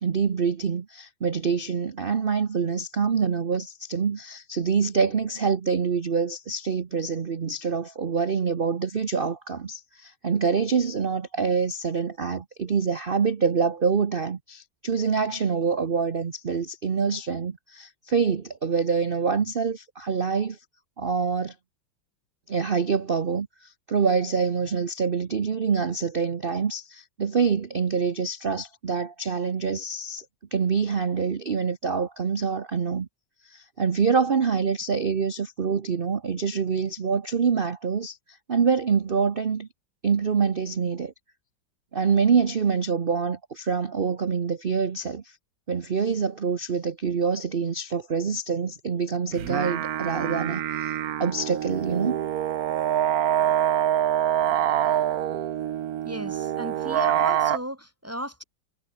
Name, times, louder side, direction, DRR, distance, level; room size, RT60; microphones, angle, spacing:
voice 1, 0.0-20.6 21.0-21.5 22.5-30.2 30.5-33.1 33.4-39.7 40.0-41.1 41.9-45.2 45.7-50.9 51.2-52.2, right 5 dB, 45° right, 0.7 m, -26 dB
sound 1, 49.3-57.6, right 11 dB, 60° right, 1.1 m, -25 dB
voice 2, 56.0-58.4, equal, 5° right, 4.8 m, -35 dB
omnidirectional pair, 2.2 m